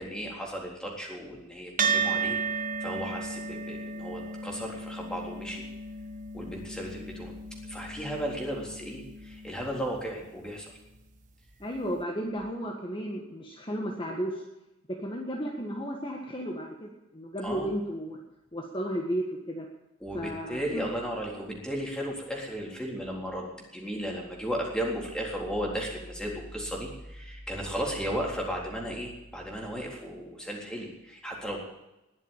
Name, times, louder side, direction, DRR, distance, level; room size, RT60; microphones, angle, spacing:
voice 1, 0.0-5.6 6.3-7.3 7.7-10.7 17.4-17.7 20.0-31.6, equal, 5° left, -1 dB, 3.8 m, -35 dB
sound 1, 1.8-10.4, right 5 dB, 40° right, 1.2 m, -34 dB
voice 2, 11.6-14.4 14.9-18.2 18.5-19.7 20.1-20.9, equal, 25° left, 0 dB, 1.7 m, -34 dB
21.0 x 7.5 x 9.0 m, 0.97 s
head